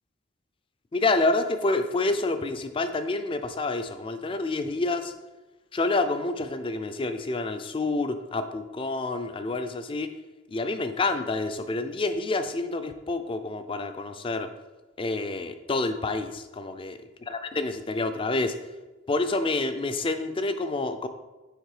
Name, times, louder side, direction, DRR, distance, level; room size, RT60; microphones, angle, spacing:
voice 1, 0.9-5.1 5.7-10.1 10.5-14.5 15.0-18.6 19.1-21.1, left 2 dB, 25° left, 9 dB, 0.4 m, -28 dB
6.6 x 4.0 x 4.8 m, 1.2 s
head